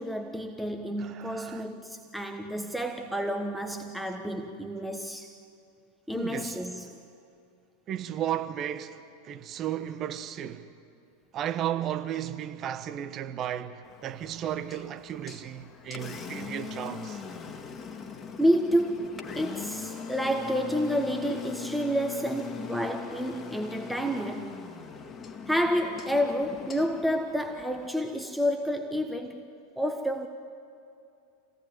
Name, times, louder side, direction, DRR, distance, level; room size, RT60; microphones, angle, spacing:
voice 1, 0.0-5.4 6.1-7.0 18.4-24.6 25.5-29.5 29.8-30.3, equal, ahead, 1.2 m, -29 dB
voice 2, 1.0-1.7 6.1-6.6 7.9-10.7 11.3-17.2, right 10 dB, 40° right, 1.1 m, -34 dB
Engine, 13.8-27.9, left 6 dB, 25° left, 1.9 m, -41 dB
26.5 x 18.0 x 9.2 m
hypercardioid pair, 90°, 0 cm